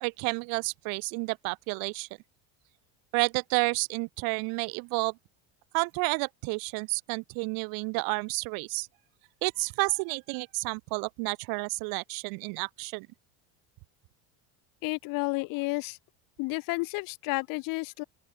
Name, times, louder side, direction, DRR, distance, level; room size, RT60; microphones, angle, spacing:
voice 1, 0.0-2.1 3.1-5.1 5.7-8.9 9.4-13.1, right 32 dB, 60° right, 0.5 m, -30 dB
voice 2, 14.8-16.0 16.4-18.0, left 24 dB, 55° left, 0.8 m, -31 dB
open air
cardioid pair, 140°, 39 cm